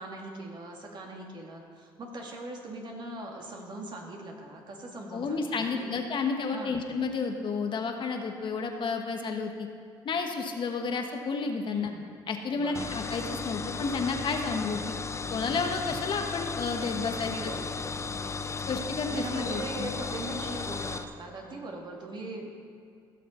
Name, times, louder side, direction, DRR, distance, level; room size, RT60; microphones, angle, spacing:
voice 1, 0.0-5.9 6.5-6.8 11.6-12.1 12.5-12.9 17.1-17.9 19.1-22.5, right 2 dB, 45° right, 0 dB, 2.2 m, -40 dB
voice 2, 5.1-9.7 10.0-11.9 12.3-14.9 15.3-17.5 18.7-19.9, left 4 dB, 50° left, 4 dB, 1.3 m, -31 dB
sound 1, 12.7-21.0, left 5 dB, 30° left, 0.7 m, -35 dB
16.5 x 6.7 x 4.4 m, 2.4 s
supercardioid pair, 70°, 10 cm